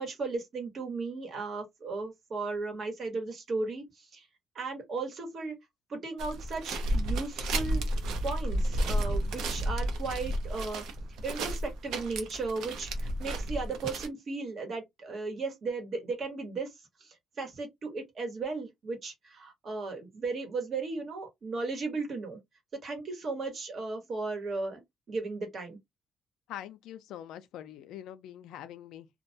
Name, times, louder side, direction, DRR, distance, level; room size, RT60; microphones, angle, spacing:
voice 1, 0.0-4.2 4.5-5.5 5.9-10.8 11.2-16.7 17.0-22.4 22.7-24.8 25.1-25.8, right 3 dB, 55° right, 1.1 m, -36 dB
sound 1, 6.2-14.1, right 1 dB, 90° right, 0.6 m, -32 dB
voice 2, 26.5-29.1, left 11 dB, 90° left, 0.4 m, -44 dB
2.3 x 2.2 x 2.7 m
cardioid pair, 90°, 0 cm